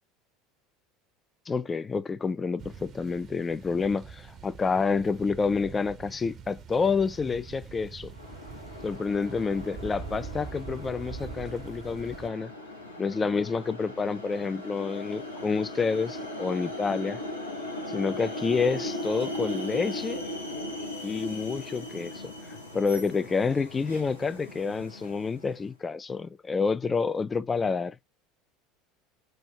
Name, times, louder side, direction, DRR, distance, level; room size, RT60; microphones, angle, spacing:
voice 1, 1.5-8.1 8.8-12.5 13.0-17.2 17.9-20.2 21.0-28.0, left 5 dB, 25° left, 0.4 m, -28 dB
sound 1, 2.6-12.3, right 6 dB, 40° right, 0.6 m, -44 dB
sound 2, 8.1-25.6, left 1 dB, 90° left, 0.8 m, -38 dB
3.1 x 2.4 x 4.4 m
figure-of-eight pair, 70°, 0 cm